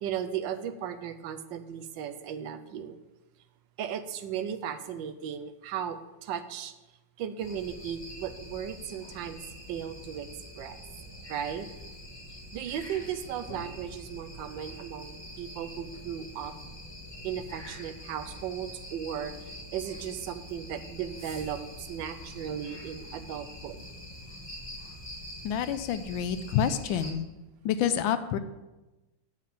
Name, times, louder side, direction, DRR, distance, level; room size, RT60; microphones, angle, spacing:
voice 1, 0.0-3.0 3.8-6.7 7.2-9.4 9.7-10.3 10.6-10.8 11.3-11.7 12.5-16.5 17.2-23.8, right 9 dB, 75° right, 11 dB, 1.3 m, -36 dB
sound 1, 7.4-27.1, left 1 dB, 15° left, 1.3 m, -45 dB
voice 2, 25.4-27.3 27.6-28.4, left 8 dB, 75° left, 11 dB, 1.3 m, -28 dB
7.4 x 5.7 x 7.3 m, 1.1 s
omnidirectional pair, 2.2 m